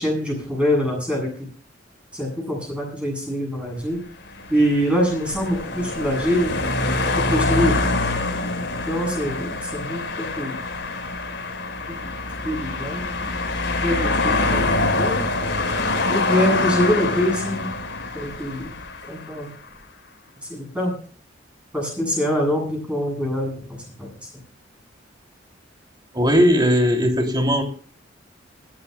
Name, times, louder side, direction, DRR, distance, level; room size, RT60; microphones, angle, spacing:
voice 1, 0.0-1.5 2.1-4.0 4.5-6.6 7.0-7.8 8.8-10.6 11.9-12.1 12.4-13.0 13.8-15.3 16.1-17.7 18.1-18.7 19.1-19.5 20.4-20.9 21.7-24.1, equal, 5° right, -1 dB, 7.8 m, -24 dB
sound 1, 4.1-19.5, left 2 dB, 75° left, 4.3 m, -25 dB
voice 2, 26.1-27.6, equal, 25° right, 3 dB, 2.9 m, -18 dB
27.0 x 12.5 x 2.2 m, 0.43 s
head